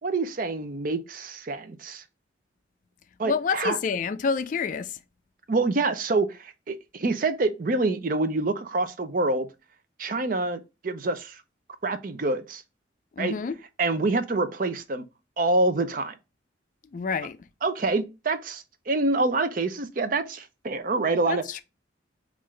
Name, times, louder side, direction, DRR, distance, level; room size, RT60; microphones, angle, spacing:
voice 1, 0.0-2.0 3.2-3.8 5.5-9.5 10.0-11.4 11.8-12.6 13.2-13.3 13.8-15.1 15.4-16.1 17.6-21.4, right 3 dB, 45° right, 0.5 m, -26 dB
voice 2, 3.3-5.0 13.1-13.5 16.9-17.4 21.3-21.6, left 5 dB, 45° left, 0.3 m, -28 dB
5.5 x 2.5 x 3.2 m
head